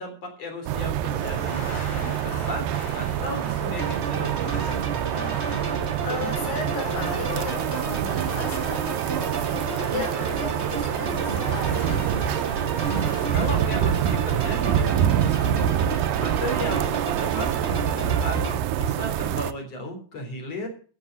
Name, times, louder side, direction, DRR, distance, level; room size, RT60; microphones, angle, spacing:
voice 1, 0.0-5.5 13.3-15.8 16.2-20.7, left 1 dB, 40° left, 3 dB, 4.5 m, -35 dB
sound 1, 0.7-19.5, right 11 dB, 80° right, 2.2 m, -26 dB
sound 2, 1.1-9.2 9.6-13.7, left 4 dB, 60° left, 4.2 m, -40 dB
sound 3, 3.8-18.5, right 4 dB, 65° right, 0.6 m, -32 dB
voice 2, 5.6-11.8, left 4 dB, 85° left, 2 dB, 6.5 m, -35 dB
14.5 x 6.5 x 7.5 m, 0.41 s
omnidirectional pair, 4.5 m